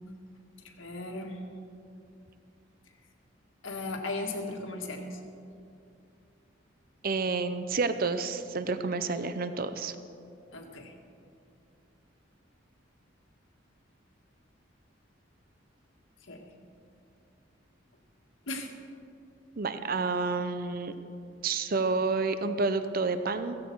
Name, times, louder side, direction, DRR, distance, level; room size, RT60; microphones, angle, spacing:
voice 1, 0.6-1.4 3.6-5.2 10.5-10.9 16.3-16.5 18.5-18.7, left 2 dB, 85° left, 2 dB, 1.8 m, -37 dB
voice 2, 7.0-10.0 19.6-20.9 21.4-23.6, right 4 dB, 50° right, 11 dB, 0.6 m, -29 dB
15.5 x 15.5 x 4.7 m, 2.6 s
head